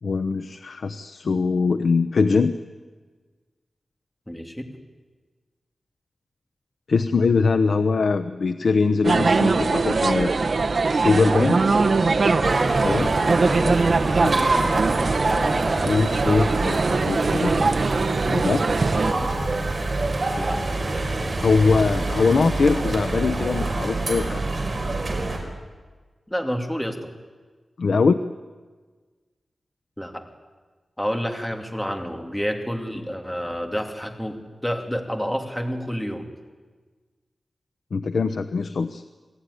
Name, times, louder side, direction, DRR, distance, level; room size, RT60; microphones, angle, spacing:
voice 1, 0.0-2.5 6.9-10.3 10.9-11.6 12.8-13.1 13.6-13.8 14.2-14.3 15.8-17.7 18.2-18.6 21.4-24.5 27.8-28.2 37.9-39.0, left 4 dB, 75° left, 9 dB, 0.9 m, -22 dB
voice 2, 4.3-4.7 11.7-11.9 13.5-13.6 19.1-19.3 20.4-20.6 26.3-27.1 30.0-30.2 31.0-36.3, equal, 5° left, 3 dB, 2.7 m, -29 dB
sound 1, 9.0-19.1, right 4 dB, 55° right, 1.2 m, -22 dB
sound 2, 12.4-25.4, right 2 dB, 35° right, 5.6 m, -26 dB
28.0 x 19.5 x 9.9 m, 1.4 s
wide cardioid pair, 130°, 0 cm